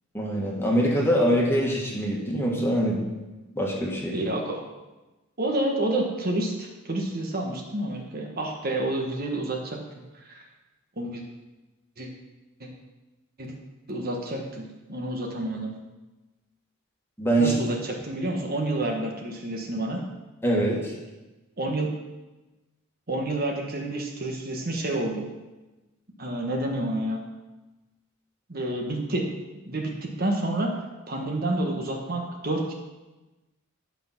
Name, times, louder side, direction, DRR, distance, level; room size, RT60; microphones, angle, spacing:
voice 1, 0.1-3.0 3.5-4.2 17.2-17.5 20.4-20.9, right 1 dB, 10° left, -2 dB, 1.7 m, -24 dB
voice 2, 4.1-4.6 5.4-9.8 10.3-10.4 11.0-11.2 12.0-12.1 12.6-12.7 13.4-13.5 13.9-15.7 17.4-20.0 21.6-21.9 23.1-25.3 26.2-27.2 28.5-29.3 29.7-30.8 31.1-32.7, right 1 dB, 45° right, 1 dB, 1.3 m, -29 dB
10.5 x 5.9 x 5.9 m, 1.1 s
head